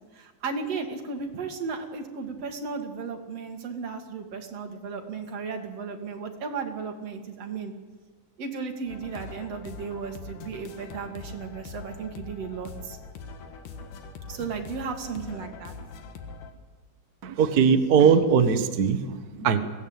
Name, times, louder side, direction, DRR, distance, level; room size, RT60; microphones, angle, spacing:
voice 1, 0.1-7.7 8.4-13.0 14.3-15.7, right 5 dB, 55° right, 4 dB, 3.0 m, -35 dB
sound 1, 8.9-16.5, left 4 dB, 75° left, 3.2 m, -42 dB
voice 2, 17.2-19.6, right 6 dB, 80° right, 8 dB, 0.8 m, -20 dB
22.0 x 17.0 x 8.9 m, 1.3 s
omnidirectional pair, 3.7 m